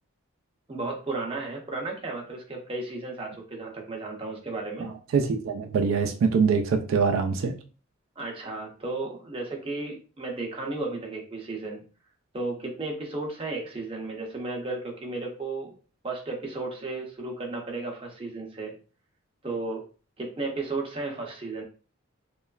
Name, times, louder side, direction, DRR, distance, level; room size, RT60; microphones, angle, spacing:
voice 1, 0.7-4.9 8.2-11.8 12.3-15.7 16.0-18.7 19.4-19.9 20.2-21.6, right 3 dB, 25° right, 0 dB, 0.5 m, -34 dB
voice 2, 4.8-7.5, right 5 dB, 75° right, 5 dB, 0.3 m, -24 dB
3.0 x 2.2 x 2.3 m, 0.37 s
head